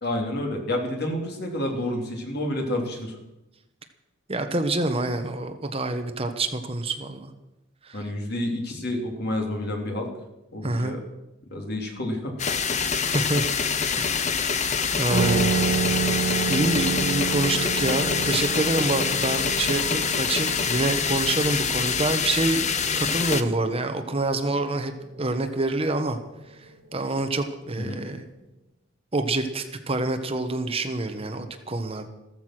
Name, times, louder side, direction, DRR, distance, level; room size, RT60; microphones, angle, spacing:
voice 1, 0.0-3.2 7.9-10.1 10.5-11.0 11.5-12.3 27.8-28.0, left 1 dB, 55° left, 2 dB, 3.4 m, -29 dB
voice 2, 4.3-7.3 7.8-8.1 10.6-11.0 13.0-13.5 14.0-14.5 14.9-15.5 16.4-24.9 25.2-26.2 26.9-28.2 29.1-32.1, right 2 dB, 30° right, 7 dB, 1.3 m, -27 dB
sound 1, 12.4-23.4, left 6 dB, 35° left, 0.9 m, -25 dB
sound 2, 15.1-24.3, right 5 dB, 70° right, 3.8 m, -30 dB
15.0 x 14.0 x 6.2 m, 0.93 s
head